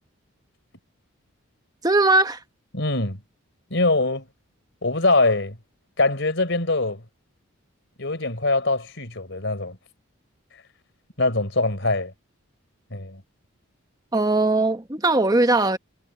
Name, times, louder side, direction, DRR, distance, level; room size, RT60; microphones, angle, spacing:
voice 1, 1.8-2.4 14.1-15.8, right 2 dB, 20° right, 1.1 m, -19 dB
voice 2, 2.7-3.2 3.7-4.3 4.8-5.6 6.0-7.0 8.0-9.8 11.2-12.1 12.9-13.2, left 2 dB, 60° left, 4.0 m, -23 dB
head